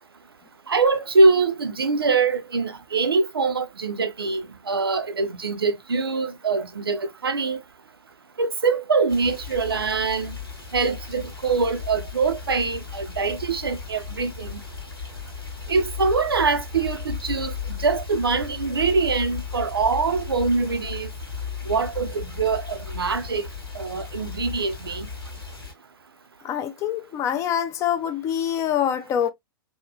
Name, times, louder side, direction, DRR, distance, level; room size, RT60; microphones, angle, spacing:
voice 1, 0.7-7.6 8.4-10.4 10.7-14.6 15.7-21.1 21.7-23.5 23.7-25.1, right 4 dB, 80° right, 0.4 m, -23 dB
sound 1, 9.1-25.7, left 6 dB, 85° left, 1.1 m, -35 dB
voice 2, 26.4-29.3, left 9 dB, 25° left, 0.3 m, -25 dB
2.7 x 2.1 x 2.2 m
figure-of-eight pair, 100°, 12 cm